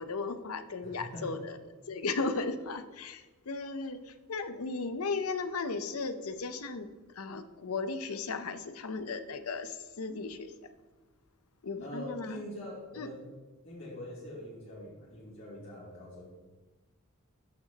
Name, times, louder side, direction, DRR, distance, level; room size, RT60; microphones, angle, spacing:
voice 1, 0.0-1.6 1.9-6.9 7.2-10.5 11.6-12.4 13.0-13.1, left 4 dB, 90° left, 10 dB, 0.7 m, -36 dB
voice 2, 0.8-1.4 11.8-13.3 13.6-16.3, left 1 dB, 65° left, -6 dB, 2.4 m, -43 dB
14.0 x 5.9 x 2.9 m, 1.2 s
head